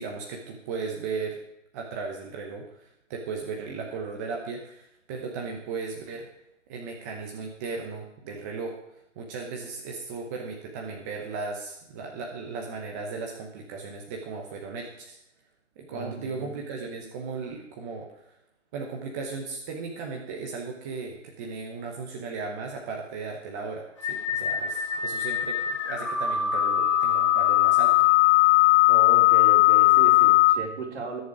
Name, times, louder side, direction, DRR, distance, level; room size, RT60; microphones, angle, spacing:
voice 1, 0.0-1.4 1.7-6.3 6.7-8.8 9.2-15.2 15.8-18.3 18.7-27.9, right 4 dB, 15° right, 0 dB, 0.9 m, -36 dB
voice 2, 15.9-16.6 28.9-31.2, right 3 dB, 55° right, -1 dB, 4.4 m, -35 dB
sound 1, 24.0-30.6, left 14 dB, 25° left, 0.7 m, -20 dB
21.0 x 7.1 x 4.9 m, 0.78 s
hypercardioid pair, 155°, 38 cm